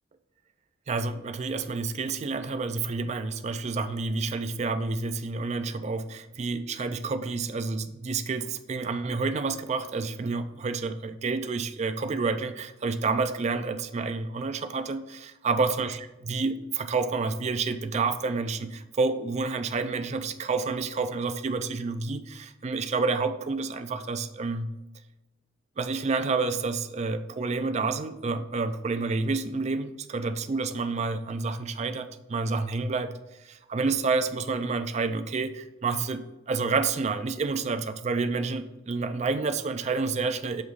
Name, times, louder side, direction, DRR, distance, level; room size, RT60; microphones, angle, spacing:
voice 1, 0.9-24.7 25.8-33.1 33.4-40.6, right 4 dB, 35° right, 9 dB, 0.4 m, -29 dB
6.4 x 3.0 x 5.2 m, 1.0 s
head